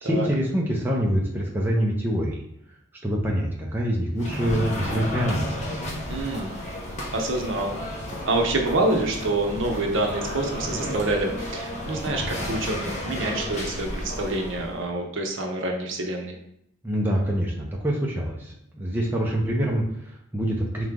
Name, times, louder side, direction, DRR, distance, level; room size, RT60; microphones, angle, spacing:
voice 1, 0.0-2.4 3.0-5.5 16.8-20.9, equal, 10° right, -3 dB, 0.6 m, -25 dB
sound 1, 4.2-14.8, left 1 dB, 35° left, 0.9 m, -32 dB
voice 2, 6.1-6.5 7.1-7.8 8.3-16.4, right 2 dB, 65° right, 2 dB, 0.8 m, -27 dB
3.8 x 3.1 x 3.6 m, 0.77 s
head